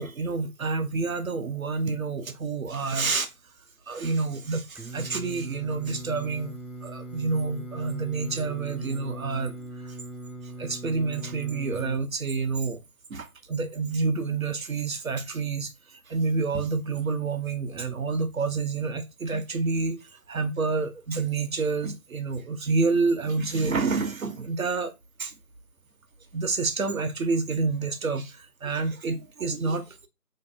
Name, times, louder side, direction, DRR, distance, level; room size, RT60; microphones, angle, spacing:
voice 1, 0.0-3.3 3.9-6.5 6.8-10.0 10.6-12.8 13.1-24.9 25.2-25.3 26.3-30.1, right 4 dB, 65° right, 0.5 m, -28 dB
Singing, 4.8-12.0, right 2 dB, 5° right, 0.3 m, -40 dB
2.5 x 2.3 x 2.3 m
figure-of-eight pair, 175°, 46 cm